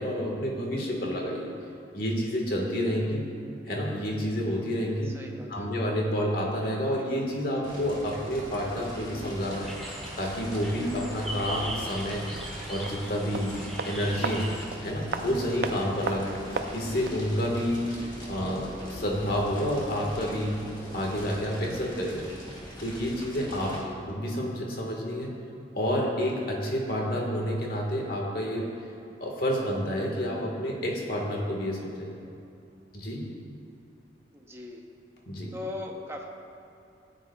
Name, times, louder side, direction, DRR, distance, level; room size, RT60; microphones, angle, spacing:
voice 1, 0.0-1.5 1.9-3.2 3.6-5.2 5.5-9.7 10.2-12.2 12.7-13.6 13.9-14.5 14.8-16.4 16.7-17.9 18.3-20.6 20.9-22.3 22.8-23.7 24.0-25.3 25.7-28.7 29.2-32.1 32.9-33.2 35.3-35.5, equal, 55° left, -1 dB, 1.6 m, -29 dB
voice 2, 5.1-5.7 23.6-24.0 34.3-34.8 35.5-36.3, left 2 dB, 15° right, 1 dB, 0.8 m, -39 dB
Fire, 7.6-23.8, equal, 25° left, 1.7 m, -42 dB
sound 1, 9.4-14.7, right 1 dB, ahead, 1.3 m, -40 dB
sound 2, 12.3-17.3 17.6-17.7, right 4 dB, 60° right, 0.5 m, -36 dB
14.0 x 9.5 x 2.3 m, 2.7 s
head